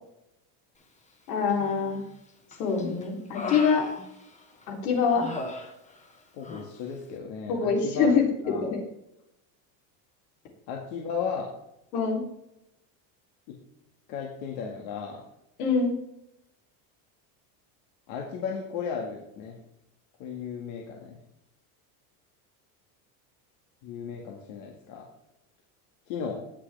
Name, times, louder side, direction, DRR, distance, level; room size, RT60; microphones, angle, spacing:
voice 1, 1.3-2.0 2.6-3.9 4.7-5.3 7.5-8.8 11.9-12.2 15.6-16.0, left 5 dB, 85° left, 1 dB, 3.5 m, -25 dB
Human voice, 1.5-2.1 2.5-4.6 5.1-6.2 6.4-6.7, left 3 dB, 15° left, 1.4 m, -39 dB
voice 2, 6.3-8.2 8.4-8.6 10.7-11.5 13.5-13.6 14.1-15.2 18.1-19.6 20.2-21.2 23.8-25.1 26.1-26.5, left 6 dB, 70° left, 0 dB, 2.0 m, -35 dB
18.5 x 6.6 x 3.4 m, 0.84 s
cardioid pair, 150°, 45 cm